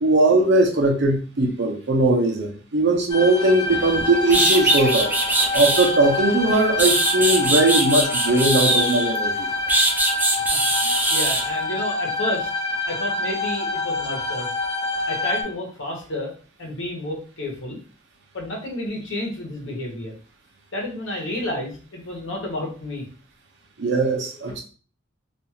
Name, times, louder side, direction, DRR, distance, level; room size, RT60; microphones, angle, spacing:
voice 1, 0.0-5.1 5.5-9.5 23.8-24.6, right 2 dB, 65° right, 1 dB, 0.7 m, -19 dB
sound 1, 3.1-15.4, left 2 dB, 25° left, 0.9 m, -27 dB
sound 2, 3.9-4.0 4.3-5.9 6.5-9.2 9.7-11.4, right 2 dB, 10° right, 0.4 m, -21 dB
voice 2, 10.5-12.5 12.9-14.5 15.1-16.3 16.6-17.8 18.3-20.1 20.7-23.1, left 1 dB, 80° left, -1 dB, 1.0 m, -31 dB
2.5 x 2.3 x 2.8 m, 0.40 s
head